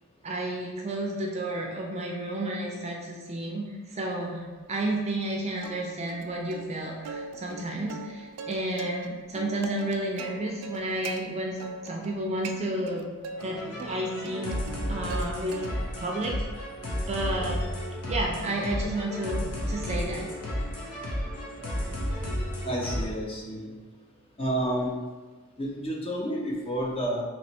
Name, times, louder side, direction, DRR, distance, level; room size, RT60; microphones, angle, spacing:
voice 1, 0.2-11.6 11.8-13.1 13.3-14.6 14.9-15.6 16.0-16.3 17.1-17.6 18.1-20.3, right 1 dB, 30° right, -1 dB, 0.5 m, -31 dB
Plucked string instrument, 5.6-6.2 6.5-6.6 7.0-9.1 9.3-11.2 11.6-12.1 12.4-13.4 13.8-15.3 15.5-16.0 16.4-20.7, right 4 dB, 90° right, 0.4 m, -40 dB
sound 1, 13.4-23.1, equal, 85° left, 1.0 m, -32 dB
voice 2, 22.6-23.7 24.4-24.9 25.6-27.2, right 1 dB, 25° left, -3 dB, 0.6 m, -30 dB
3.1 x 2.9 x 4.3 m, 1.3 s
head